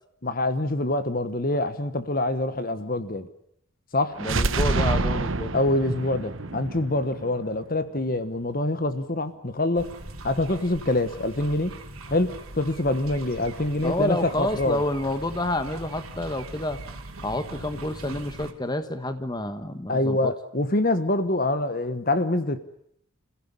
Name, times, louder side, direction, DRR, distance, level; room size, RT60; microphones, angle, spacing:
voice 1, 0.2-3.3 3.9-4.2 5.5-9.9 10.2-11.7 12.1-14.8 19.9-22.6, left 2 dB, 40° left, 11 dB, 1.3 m, -25 dB
voice 2, 4.2-5.6 13.8-16.8 17.2-20.3, left 1 dB, 20° left, 10 dB, 1.3 m, -29 dB
sound 1, 4.2-8.0, right 3 dB, 65° right, 1.1 m, -27 dB
sound 2, 9.7-18.5, right 2 dB, 85° right, 3.0 m, -41 dB
27.5 x 16.0 x 9.8 m, 0.71 s
head